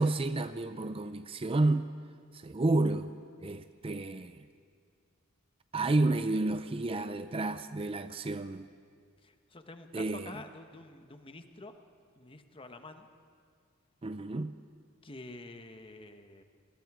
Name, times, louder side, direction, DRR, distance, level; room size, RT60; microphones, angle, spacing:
voice 1, 0.0-1.9 2.3-4.4 5.7-8.7 9.9-10.3 14.0-14.6, right 2 dB, 25° right, 11 dB, 0.5 m, -30 dB
voice 2, 9.2-11.7 12.1-13.1 15.0-16.4, left 2 dB, 25° left, 7 dB, 1.2 m, -48 dB
28.5 x 20.5 x 4.9 m, 2.1 s
head